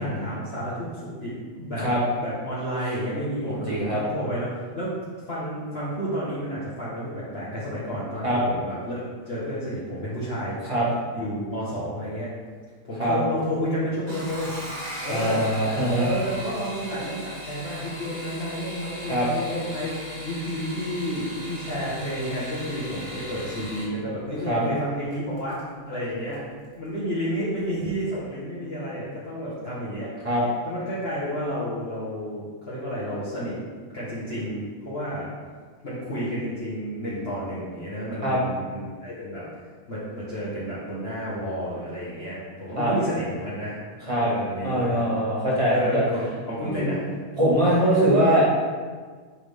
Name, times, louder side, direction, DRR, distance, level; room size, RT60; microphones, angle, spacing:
voice 1, 0.0-1.9 2.2-5.0 5.3-10.6 11.1-12.3 12.8-14.5 15.0-15.5 16.0-25.6 25.9-26.4 26.7-30.3 30.6-33.6 33.9-35.3 35.8-39.5 39.9-43.8 44.2-45.1 45.7-47.0, equal, 40° left, -10 dB, 1.5 m, -31 dB
voice 2, 1.6-2.0 3.4-4.0 8.2-8.4 10.6-10.9 13.0-13.2 15.1-16.1 19.0-19.3 24.5-24.6 30.2-30.4 38.2-38.4 42.8-42.9 44.1-44.3 44.6-46.0 46.6-46.8 47.4-48.5, right 1 dB, 20° right, -7 dB, 1.9 m, -22 dB
sound 1, 14.1-23.9 25.1-25.6 26.0-26.4 26.7-26.8, equal, 65° right, 2.6 m, -38 dB
10.0 x 3.7 x 3.6 m, 1.5 s
omnidirectional pair, 1.8 m